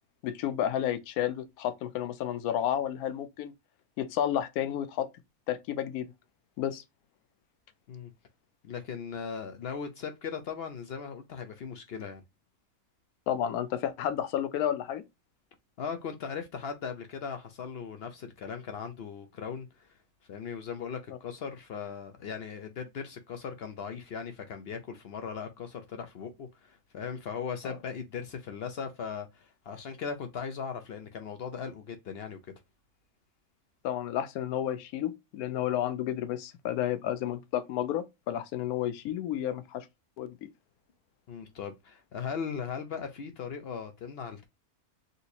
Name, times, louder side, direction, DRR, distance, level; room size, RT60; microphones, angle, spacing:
voice 1, 0.2-3.5 4.0-5.1 5.5-6.1 6.6-6.8 13.3-15.0 27.6-27.8 33.8-39.9 40.2-40.5, left 10 dB, 85° left, 1.1 m, -31 dB
voice 2, 8.6-12.2 15.8-19.9 20.3-32.4 41.3-44.5, left 6 dB, 65° left, 0.6 m, -38 dB
3.9 x 2.8 x 2.5 m
omnidirectional pair, 1.5 m